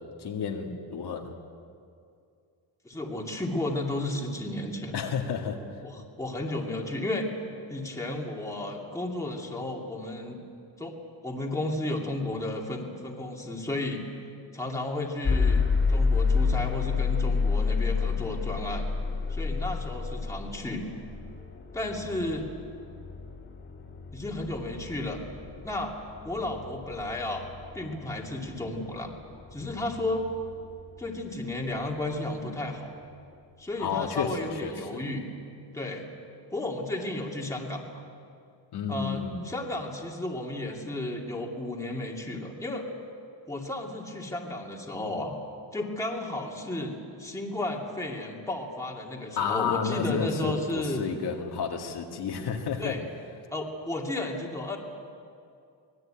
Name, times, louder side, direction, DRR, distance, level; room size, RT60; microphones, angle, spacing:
voice 1, 0.0-1.3 4.9-5.6 33.8-35.0 38.7-39.4 49.4-53.0, left 6 dB, 60° left, 1 dB, 2.2 m, -31 dB
voice 2, 2.8-5.0 5.8-7.3 7.7-10.4 10.8-10.9 11.2-14.0 14.5-15.6 15.9-18.8 19.3-20.8 21.7-22.5 24.1-25.2 25.6-25.9 26.2-27.4 27.7-29.1 29.5-30.3 31.0-32.9 33.6-35.2 35.7-36.1 36.5-38.0 38.9-42.9 43.5-45.4 45.7-46.9 47.2-51.0 52.8-53.0 53.5-54.8, left 2 dB, 5° left, -1 dB, 2.6 m, -33 dB
sound 1, 15.2-31.2, left 5 dB, 25° left, 2.7 m, -30 dB
25.0 x 20.5 x 8.9 m, 2.4 s
wide cardioid pair, 180°, 44 cm